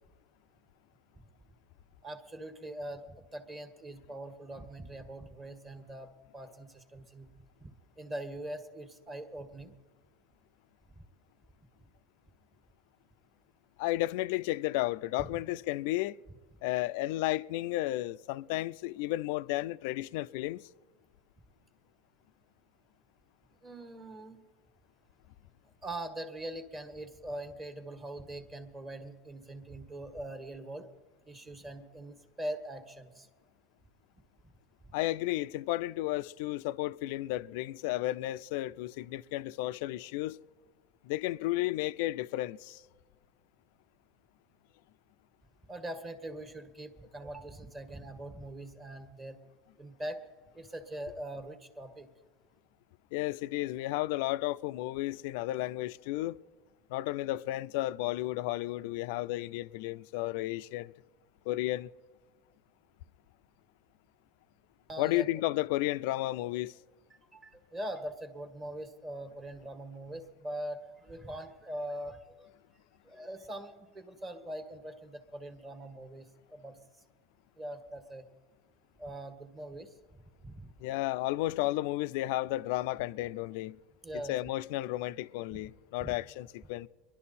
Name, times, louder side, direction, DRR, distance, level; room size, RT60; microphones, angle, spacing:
voice 1, 2.0-7.3 7.6-9.7 15.3-15.4 23.6-24.4 25.8-30.9 31.3-33.3 45.7-49.4 49.8-50.2 50.5-52.1 64.9-65.3 67.3-72.5 73.0-76.8 77.6-78.2 79.0-79.9 80.4-80.7 84.0-84.3 85.5-85.6 86.0-86.1, right 1 dB, 20° right, 1.5 m, -42 dB
voice 2, 13.8-16.2 16.6-20.7 34.9-40.4 41.0-42.8 53.1-56.4 56.9-60.9 61.5-61.9 65.0-66.7 80.8-83.8 84.1-86.9, left 17 dB, 70° left, 0.4 m, -33 dB
23.5 x 11.5 x 4.2 m
supercardioid pair, 145°, 0 cm